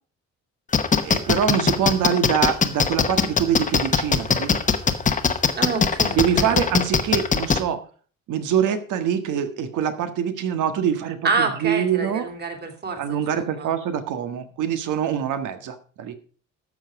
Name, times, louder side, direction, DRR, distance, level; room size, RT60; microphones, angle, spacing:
sound 1, 0.7-7.6, left 6 dB, 25° left, 1.0 m, -19 dB
voice 1, 1.0-4.6 6.1-7.8 8.3-12.2 13.0-16.2, right 8 dB, 80° right, 9 dB, 1.6 m, -24 dB
voice 2, 5.6-6.6 11.2-13.7, right 4 dB, 35° right, 6 dB, 2.5 m, -27 dB
13.0 x 7.4 x 4.8 m, 0.41 s
cardioid pair, 160°, 30 cm